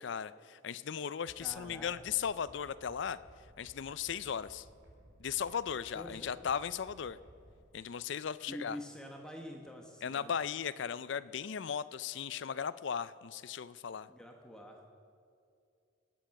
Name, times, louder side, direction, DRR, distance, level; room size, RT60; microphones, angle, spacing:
voice 1, 0.0-3.2 3.6-4.7 5.2-7.2 7.7-8.8 10.0-14.1, left 7 dB, 60° left, 16 dB, 0.4 m, -37 dB
sound 1, 1.2-7.6, right 1 dB, 65° right, 4.4 m, -59 dB
voice 2, 1.4-1.9 5.9-6.3 8.5-10.3 14.1-14.8, equal, 5° left, 1 dB, 1.1 m, -46 dB
20.5 x 9.1 x 5.9 m, 2.4 s
head